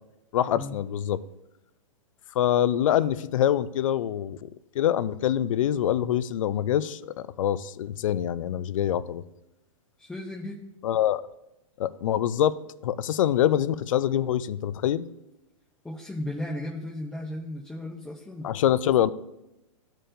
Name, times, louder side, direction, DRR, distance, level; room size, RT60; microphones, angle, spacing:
voice 1, 0.3-1.2 2.4-4.5 4.8-9.2 10.8-11.2 11.8-12.6 12.8-15.1 18.4-19.1, left 11 dB, 70° left, 16 dB, 0.4 m, -25 dB
voice 2, 10.0-10.6 15.8-18.5, left 1 dB, 5° left, -3 dB, 0.5 m, -35 dB
13.5 x 4.5 x 2.5 m, 0.90 s
hypercardioid pair, 140°, 17 cm